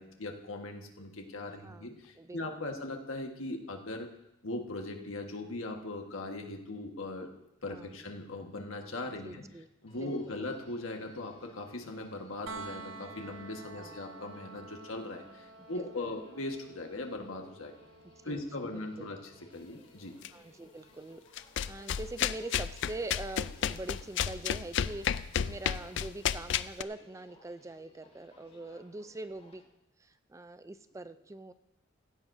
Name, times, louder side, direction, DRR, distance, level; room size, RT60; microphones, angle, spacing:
voice 1, 0.0-4.1 4.4-7.3 7.6-9.4 9.8-17.7 18.2-20.1, left 2 dB, 90° left, 3 dB, 1.5 m, -39 dB
voice 2, 1.5-2.7 7.7-8.0 9.2-9.7 9.9-10.1 13.8-14.0 15.8-16.1 18.2-19.1 20.3-29.6 30.0-31.5, right 2 dB, 15° right, 12 dB, 0.4 m, -44 dB
Human voice, 9.9-29.7, left 1 dB, 35° left, 4.6 m, -62 dB
sound 1, 12.5-24.3 26.2-26.3, right 3 dB, 65° right, 0.6 m, -51 dB
sound 2, 20.2-20.3 21.4-26.8, left 9 dB, 65° left, 0.4 m, -32 dB
16.5 x 15.5 x 2.7 m, 0.90 s
head